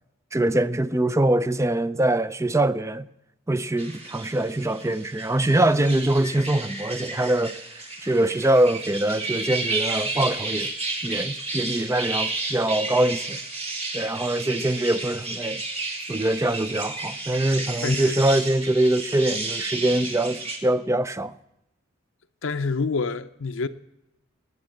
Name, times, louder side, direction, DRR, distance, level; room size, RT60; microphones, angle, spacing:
voice 1, 0.3-3.1 3.5-7.6 8.0-10.7 11.0-13.4 13.9-15.6 16.1-21.3, right 1 dB, 15° right, 0.5 m, -23 dB
sound 1, 3.8-20.6, right 3 dB, 30° right, 2.9 m, -32 dB
voice 2, 17.8-18.2 22.4-23.7, left 4 dB, 65° left, 0.6 m, -27 dB
18.5 x 9.7 x 7.8 m
head